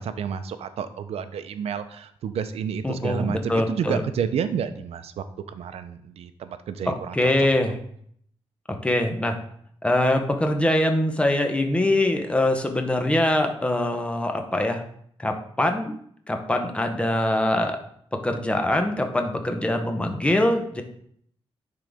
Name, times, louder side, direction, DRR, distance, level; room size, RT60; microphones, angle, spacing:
voice 1, 0.0-7.3, right 7 dB, 80° right, 11 dB, 0.5 m, -30 dB
voice 2, 2.8-4.0 6.9-7.8 8.8-9.3 9.8-14.8 15.2-15.9 16.3-17.8 18.2-20.8, left 1 dB, 10° left, 5 dB, 0.8 m, -23 dB
9.9 x 3.8 x 3.5 m, 0.67 s
wide cardioid pair, 130°, 10 cm